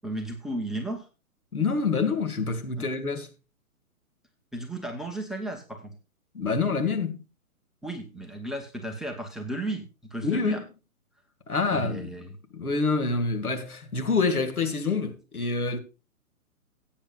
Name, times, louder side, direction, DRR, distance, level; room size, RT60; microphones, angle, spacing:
voice 1, 0.0-1.1 2.8-2.9 4.5-5.9 7.8-10.6 11.7-12.4, right 1 dB, ahead, 0.7 m, -34 dB
voice 2, 1.5-3.3 6.3-7.2 10.2-10.6 11.5-12.1 12.5-15.8, left 4 dB, 80° left, 2.2 m, -26 dB
17.5 x 8.7 x 2.4 m
figure-of-eight pair, 125°, 43 cm